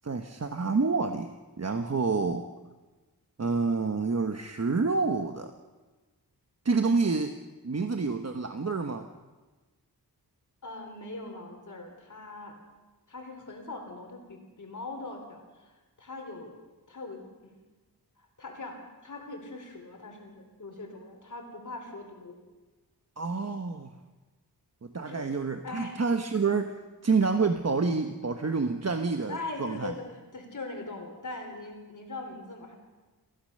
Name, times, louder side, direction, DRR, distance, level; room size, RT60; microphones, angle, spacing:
voice 1, 0.0-2.4 3.4-5.5 6.6-7.4 7.6-9.1 23.2-23.9 24.8-26.7 27.0-29.9, right 4 dB, 40° right, 6 dB, 1.1 m, -28 dB
voice 2, 10.6-12.6 13.1-16.6 16.9-17.3 18.2-22.4 25.1-25.3 25.6-26.0 29.3-32.7, left 2 dB, 50° left, 3 dB, 3.7 m, -41 dB
28.0 x 15.5 x 6.6 m, 1.2 s
wide cardioid pair, 110°, 39 cm